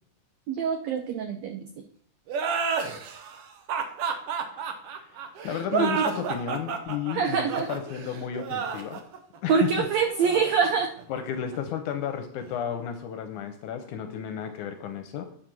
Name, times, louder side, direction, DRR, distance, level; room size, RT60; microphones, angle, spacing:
voice 1, 0.5-1.7 5.8-6.1 7.1-7.7 9.5-10.9, right 6 dB, 85° right, 7 dB, 1.5 m, -25 dB
sound 1, 2.3-11.6, right 6 dB, 70° right, 1.4 m, -31 dB
voice 2, 5.4-9.0 9.4-9.9 11.1-15.2, left 8 dB, 75° left, 7 dB, 2.0 m, -32 dB
9.0 x 5.1 x 6.1 m, 0.64 s
omnidirectional pair, 3.8 m